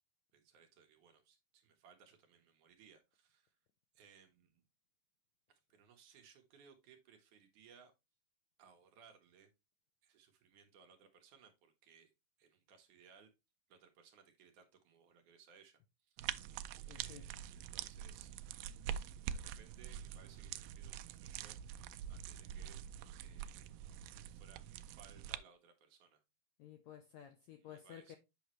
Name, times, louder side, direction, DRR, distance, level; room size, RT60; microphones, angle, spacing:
voice 1, 0.3-3.5 4.0-4.6 5.5-7.9 8.6-9.5 10.0-12.1 12.4-13.3 13.7-16.3 16.9-18.6 19.3-21.6 22.1-22.8 23.2-23.7 24.0-26.2 27.6-28.2, right 6 dB, 65° right, 2.4 m, -64 dB
sound 1, 16.2-25.4, right 10 dB, 85° right, 2.2 m, -45 dB
voice 2, 16.9-17.2 26.6-28.2, left 10 dB, 75° left, 1.6 m, -54 dB
8.3 x 5.5 x 3.0 m
omnidirectional pair, 4.0 m